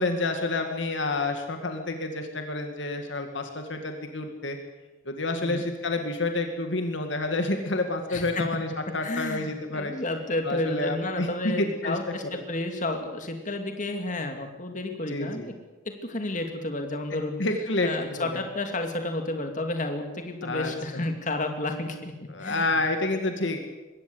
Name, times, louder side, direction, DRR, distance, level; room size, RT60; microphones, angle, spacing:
voice 1, 0.0-4.6 5.1-9.9 10.4-11.3 11.6-12.0 12.3-12.4 15.1-15.6 17.4-18.4 20.4-21.0 22.3-23.6, left 2 dB, 65° left, 5 dB, 2.2 m, -29 dB
voice 2, 8.1-8.5 9.0-15.5 16.0-17.4 17.8-22.1 22.4-22.8, left 2 dB, 40° left, 5 dB, 2.6 m, -31 dB
22.0 x 17.0 x 8.0 m, 1.2 s
head